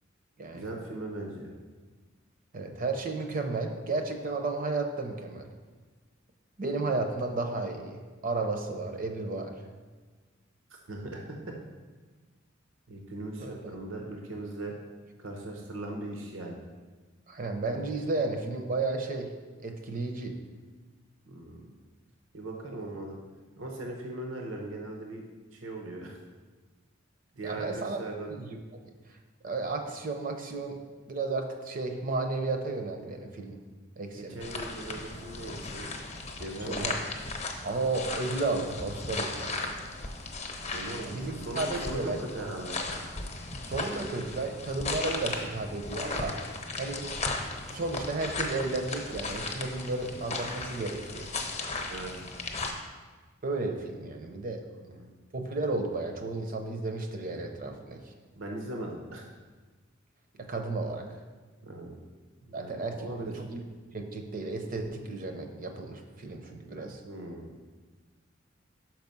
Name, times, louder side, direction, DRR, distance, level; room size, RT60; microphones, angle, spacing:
voice 1, 0.5-1.5 10.9-11.5 12.9-14.8 15.2-16.6 21.2-21.7 22.3-23.2 23.6-25.2 25.5-26.2 27.3-28.3 34.2-35.9 36.4-36.9 40.7-42.8 43.8-44.0 51.9-52.1 54.8-55.1 58.4-59.3 61.6-62.0 62.5-63.4 67.0-67.5, right 2 dB, 80° right, 1 dB, 0.9 m, -39 dB
voice 2, 2.5-5.5 6.6-9.5 13.4-13.7 17.3-19.3 19.6-20.3 27.4-28.0 28.4-28.6 29.4-30.8 31.1-33.6 34.0-34.4 36.6-37.0 37.6-39.7 41.0-42.2 43.6-46.3 46.8-47.0 47.7-51.3 53.4-54.6 55.3-58.1 60.4-61.1 62.5-62.9 63.4-63.6 63.9-67.0, right 3 dB, 45° right, 5 dB, 0.7 m, -33 dB
sound 1, 34.4-52.7, left 3 dB, 35° left, 0.8 m, -36 dB
6.0 x 5.1 x 5.3 m, 1.4 s
head